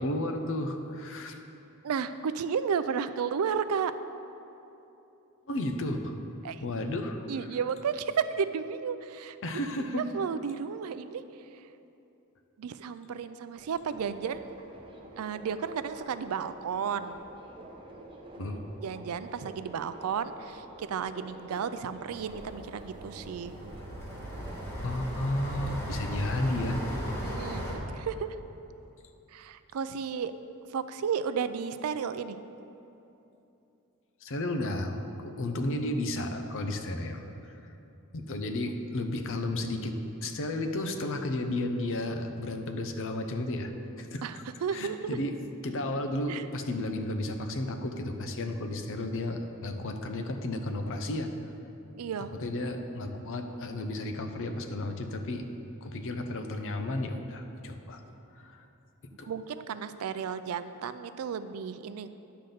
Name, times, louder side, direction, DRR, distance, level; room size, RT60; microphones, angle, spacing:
voice 1, 0.0-1.4 5.5-6.2 6.6-7.3 9.4-10.0 18.4-18.6 24.8-26.8 34.2-37.3 38.1-43.7 44.0-44.2 44.7-45.3 45.6-51.3 52.4-55.4 55.8-58.0 58.4-58.6 59.2-59.3, left 1 dB, 60° left, 6 dB, 0.7 m, -33 dB
voice 2, 1.8-3.9 6.4-6.6 7.3-11.2 11.5-11.7 12.6-14.5 15.2-17.2 18.8-23.5 27.2-28.4 29.3-30.3 30.7-32.4 38.9-39.0 44.2-45.2 46.3-46.4 52.0-52.3 59.3-62.1, right 6 dB, 70° right, 12 dB, 0.4 m, -33 dB
Subway metro underground, 13.6-25.0, right 1 dB, 25° right, 0.8 m, -48 dB
sound 1, 22.1-27.8, equal, 10° left, 1.3 m, -37 dB
10.0 x 4.0 x 6.7 m, 2.9 s
head